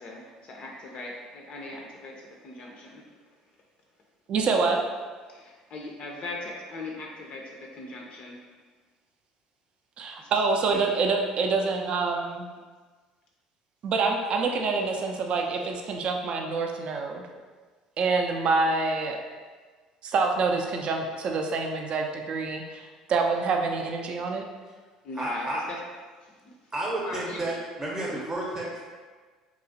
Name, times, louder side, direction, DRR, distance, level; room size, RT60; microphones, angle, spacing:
voice 1, 0.0-3.0 5.3-8.4 10.2-10.3 10.7-10.9 25.0-25.8 26.2-26.5 27.0-27.4 28.1-28.2, left 2 dB, 45° left, -1 dB, 0.4 m, -40 dB
voice 2, 4.3-4.8 10.0-12.5 13.8-17.2 18.0-19.2 20.0-24.5, right 4 dB, 45° right, 3 dB, 0.3 m, -26 dB
voice 3, 25.1-25.6 26.7-28.8, right 1 dB, 20° right, -4 dB, 0.7 m, -31 dB
2.9 x 2.4 x 2.6 m, 1.4 s
hypercardioid pair, 60°, 2 cm